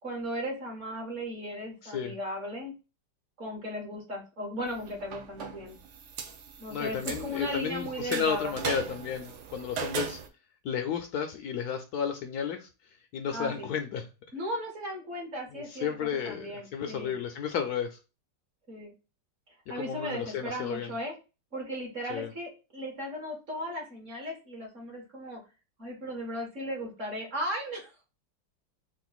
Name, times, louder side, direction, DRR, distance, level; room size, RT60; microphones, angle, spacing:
voice 1, 0.0-2.7 3.4-5.8 6.6-8.5 13.3-13.7 14.3-17.1 18.7-18.9 19.7-21.1 21.5-25.4 25.8-27.9, equal, 45° right, 0 dB, 1.6 m, -36 dB
voice 2, 1.8-2.1 6.7-10.2 10.6-12.7 13.1-14.1 15.5-18.0 19.8-20.9 22.1-22.3, left 7 dB, 70° left, 6 dB, 1.0 m, -32 dB
sound 1, 4.7-10.3, right 7 dB, 70° right, 0.6 m, -39 dB
3.8 x 2.5 x 3.9 m, 0.30 s
omnidirectional pair, 1.9 m